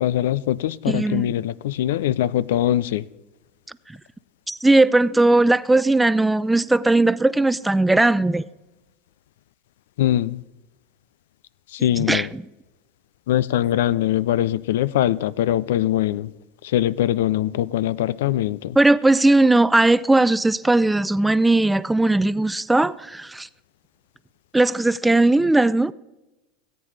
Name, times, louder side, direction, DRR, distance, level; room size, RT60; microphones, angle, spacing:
voice 1, 0.0-3.0 10.0-10.4 11.7-12.3 13.3-16.3 16.7-18.8, left 12 dB, 75° left, 0.3 m, -22 dB
voice 2, 0.9-1.3 4.5-8.4 12.0-12.4 18.8-23.5 24.5-25.9, right 2 dB, 10° right, 0.4 m, -18 dB
17.5 x 8.8 x 3.3 m
hypercardioid pair, 95°, 0 cm